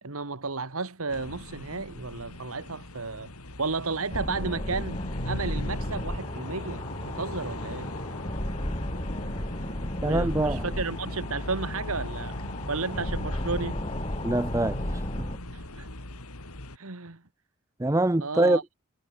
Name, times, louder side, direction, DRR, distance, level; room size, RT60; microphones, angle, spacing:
voice 1, 0.0-3.3 3.6-7.9 10.0-13.8 15.5-15.9 16.7-17.2 18.2-18.6, right 4 dB, 75° right, 1.7 m, -33 dB
sound 1, 1.1-16.8, left 1 dB, 85° left, 4.1 m, -40 dB
sound 2, 4.1-15.4, left 1 dB, 25° left, 3.0 m, -34 dB
voice 2, 10.0-10.6 14.2-15.0 17.8-18.6, right 2 dB, 15° right, 0.5 m, -24 dB
head